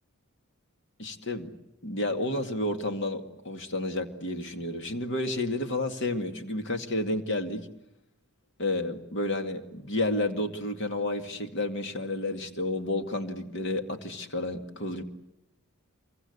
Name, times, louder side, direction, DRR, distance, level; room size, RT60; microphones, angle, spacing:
voice 1, 1.0-1.5 1.8-7.7 8.6-15.0, left 2 dB, 55° left, 6 dB, 2.3 m, -31 dB
27.5 x 24.0 x 8.2 m, 0.86 s
head